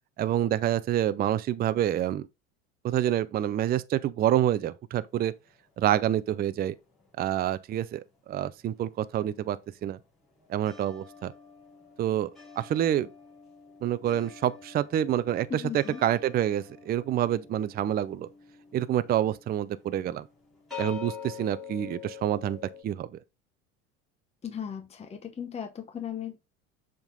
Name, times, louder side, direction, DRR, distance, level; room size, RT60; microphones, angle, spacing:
voice 1, 0.2-2.3 2.8-5.3 5.8-6.8 7.2-10.0 10.5-11.3 12.0-12.3 12.6-13.1 13.8-18.3 18.7-20.3 20.8-23.1, right 11 dB, 25° right, 0.5 m, -27 dB
sound 1, 5.1-7.8 8.1-22.8, left 7 dB, ahead, 4.2 m, -47 dB
voice 2, 15.5-16.0 24.4-26.4, left 8 dB, 20° left, 0.9 m, -37 dB
7.1 x 3.7 x 3.9 m
supercardioid pair, 105°, 35 cm